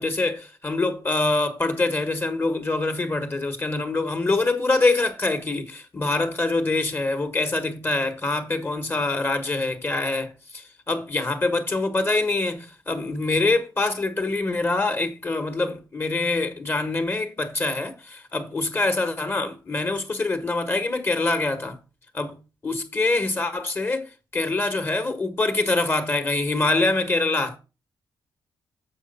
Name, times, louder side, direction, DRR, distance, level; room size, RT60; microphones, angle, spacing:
voice 1, 0.0-21.8 22.1-22.4 22.6-27.6, left 2 dB, 30° left, 1.3 m, -25 dB
7.8 x 4.9 x 5.4 m
cardioid pair, 105°, 8 cm